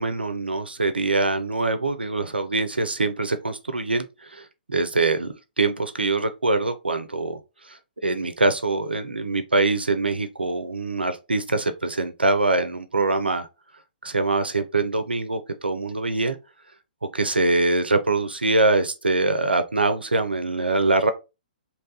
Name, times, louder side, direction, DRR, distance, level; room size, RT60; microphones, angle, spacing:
voice 1, 0.0-7.4 7.6-13.5 14.0-16.4 17.1-21.1, right 3 dB, 85° right, 0.4 m, -24 dB
2.9 x 2.2 x 2.7 m
figure-of-eight pair, 125°, 5 cm